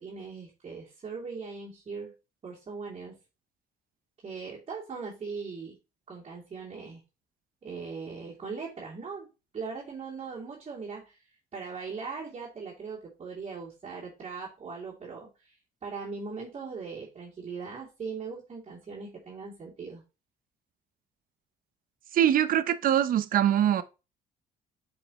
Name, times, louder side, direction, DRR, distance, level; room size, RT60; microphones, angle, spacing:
voice 1, 0.0-2.1 2.4-3.2 4.2-5.8 6.1-7.0 7.6-9.3 9.5-11.2 11.5-20.0, right 5 dB, 35° right, 3.0 m, -40 dB
voice 2, 22.1-23.8, right 10 dB, 55° right, 0.8 m, -23 dB
9.3 x 5.1 x 3.0 m
cardioid pair, 110°, 17 cm